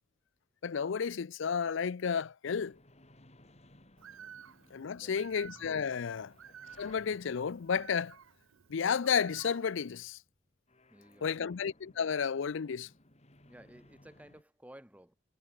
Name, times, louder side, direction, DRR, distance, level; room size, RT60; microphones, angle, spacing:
voice 1, 0.6-2.8 4.7-6.3 6.8-8.2 8.7-10.2 11.2-12.9, left 6 dB, 65° left, 0.5 m, -32 dB
sound 1, 2.6-14.4, left 1 dB, 35° left, 5.4 m, -62 dB
Bird, 4.0-10.0, right 8 dB, 85° right, 0.7 m, -54 dB
voice 2, 5.0-5.4 10.9-11.6 13.5-15.2, right 1 dB, 5° right, 2.1 m, -56 dB
head